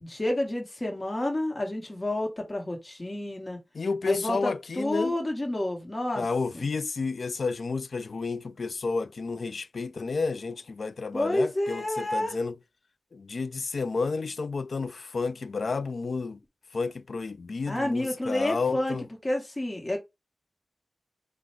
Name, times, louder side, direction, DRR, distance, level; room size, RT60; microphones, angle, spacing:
voice 1, 0.0-3.6 4.1-6.3 6.5-6.7 11.1-12.3 17.7-19.0 19.2-20.0, left 1 dB, 30° left, 1.1 m, -29 dB
voice 2, 3.7-5.2 6.2-12.6 13.1-16.4 16.7-19.1, left 4 dB, 70° left, 0.3 m, -31 dB
3.7 x 2.1 x 4.3 m
wide cardioid pair, 110°, 0 cm